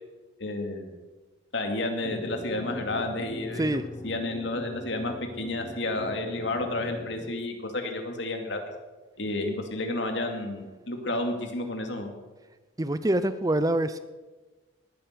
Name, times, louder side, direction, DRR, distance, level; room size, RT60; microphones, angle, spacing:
voice 1, 0.4-1.0 1.5-3.8 4.0-8.6 9.2-12.1, left 2 dB, 60° left, 4 dB, 2.5 m, -31 dB
sound 1, 2.0-7.3, left 1 dB, 20° left, 1.1 m, -40 dB
voice 2, 12.8-14.0, right 1 dB, 20° right, 13 dB, 0.5 m, -25 dB
19.0 x 10.5 x 6.8 m, 1.3 s
head